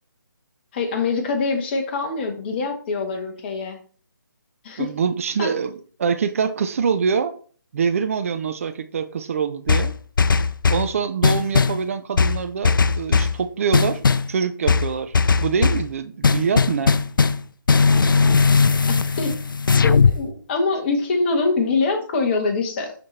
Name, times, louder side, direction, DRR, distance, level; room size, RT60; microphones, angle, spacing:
voice 1, 0.7-3.8 4.6-4.9 5.4-5.5 18.9-19.4 19.8-22.9, left 3 dB, 30° left, 4 dB, 1.5 m, -24 dB
voice 2, 4.8-7.3 7.7-9.9 10.7-14.0 14.3-15.2 15.4-17.0, right 6 dB, 40° right, 9 dB, 0.7 m, -24 dB
sound 1, 9.7-10.9 11.2-11.8 12.2-13.4 13.7-14.3 14.7-15.9 16.2-17.4 17.7-20.2, left 5 dB, 75° left, 0.5 m, -18 dB
11.0 x 4.2 x 3.3 m, 0.43 s
figure-of-eight pair, 155°, 11 cm